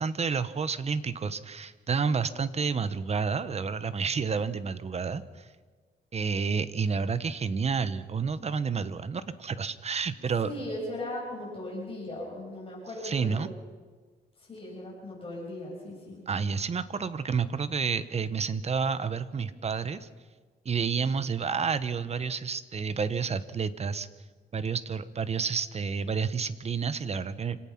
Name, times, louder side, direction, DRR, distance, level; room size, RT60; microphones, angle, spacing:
voice 1, 0.0-5.5 6.1-10.5 13.0-13.5 16.3-20.1 20.6-24.1 24.5-27.6, right 5 dB, 35° right, 14 dB, 1.0 m, -30 dB
voice 2, 10.4-13.5 14.4-16.2, left 1 dB, 30° left, -4 dB, 6.9 m, -38 dB
26.5 x 17.5 x 5.9 m, 1.4 s
cardioid pair, 120°, 18 cm